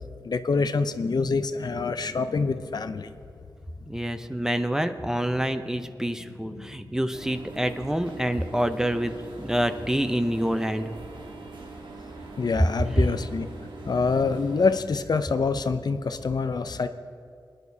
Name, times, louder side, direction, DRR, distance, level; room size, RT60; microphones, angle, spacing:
voice 1, 0.2-3.1 6.6-6.7 12.4-13.5 13.9-16.9, left 4 dB, 60° left, 10 dB, 0.5 m, -26 dB
voice 2, 3.9-10.9, equal, 5° right, 8 dB, 0.6 m, -27 dB
sound 1, 7.1-14.8, right 3 dB, 85° right, 1.4 m, -42 dB
25.0 x 10.5 x 2.7 m, 2.4 s
wide cardioid pair, 95°, 8 cm